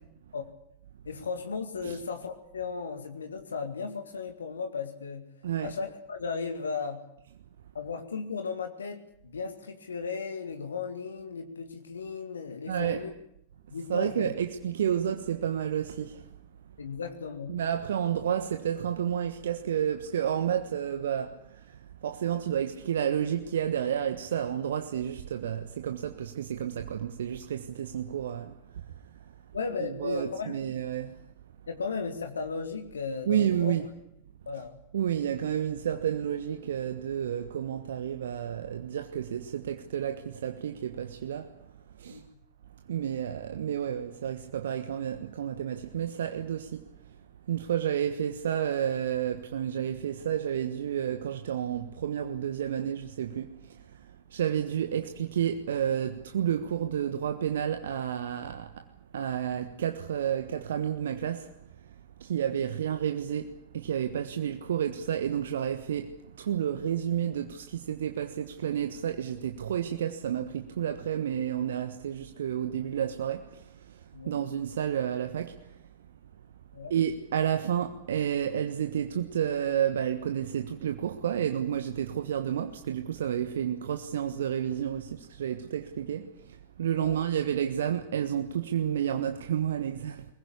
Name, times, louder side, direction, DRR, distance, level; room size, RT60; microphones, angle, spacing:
voice 1, 1.0-5.3 5.6-7.0 7.7-9.0 9.3-13.1 13.7-14.3 16.8-17.6 29.5-30.6 31.7-33.7 34.5-34.8 42.1-42.2 74.1-74.3 76.7-76.9 87.0-87.2, left 5 dB, 70° left, 2.1 m, -35 dB
voice 2, 12.7-13.0 13.9-16.3 17.5-28.8 29.8-31.2 33.3-33.8 34.9-41.6 42.0-42.2 42.9-46.9 47.5-61.5 62.2-75.8 76.9-90.3, right 9 dB, 65° right, 1.4 m, -31 dB
23.0 x 20.5 x 8.4 m
figure-of-eight pair, 90°, 0 cm